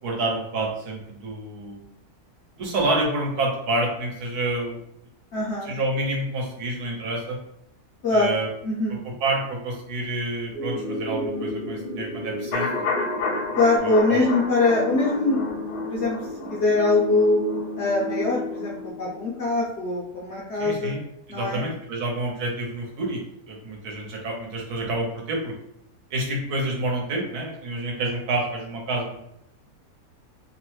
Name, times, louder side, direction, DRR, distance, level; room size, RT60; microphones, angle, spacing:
voice 1, 0.0-1.8 2.6-4.8 5.6-7.4 8.1-8.5 9.2-12.7 13.8-14.3 20.6-21.0 21.3-23.2 23.5-25.6 26.1-29.2, right 2 dB, 80° right, -1 dB, 1.3 m, -28 dB
voice 2, 5.3-5.7 8.0-8.3 8.6-9.0 13.6-15.4 15.9-16.2 16.5-17.4 17.8-21.0 21.3-21.6, left 2 dB, 65° left, -4 dB, 0.7 m, -22 dB
sound 1, 10.5-19.6, left 1 dB, 35° right, 0.3 m, -32 dB
sound 2, 12.5-18.4 18.7-18.8, left 4 dB, 80° left, 1.1 m, -31 dB
2.9 x 2.1 x 3.1 m, 0.77 s
omnidirectional pair, 1.6 m